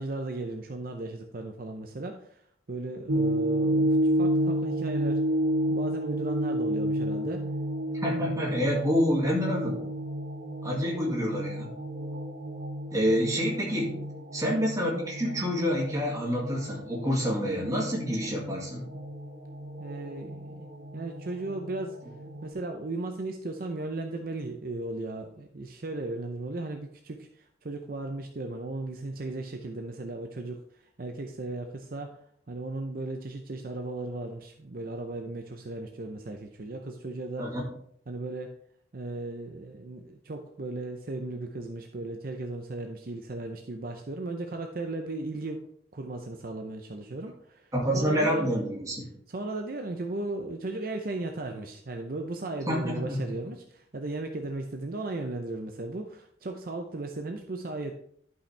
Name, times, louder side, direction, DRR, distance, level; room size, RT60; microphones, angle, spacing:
voice 1, 0.0-2.4 2.7-5.2 5.7-7.4 19.8-22.0 22.4-37.5 38.1-38.5 38.9-45.6 45.9-48.5 49.3-57.9, right 2 dB, 50° right, 4 dB, 0.6 m, -36 dB
sound 1, 3.1-22.5, right 1 dB, 85° right, 1.2 m, -31 dB
voice 2, 8.0-9.9 10.6-11.7 12.9-14.0 14.3-18.8 37.4-37.6 47.7-49.0 52.7-53.2, equal, 20° right, -2 dB, 2.0 m, -27 dB
11.5 x 5.6 x 3.3 m, 0.67 s
head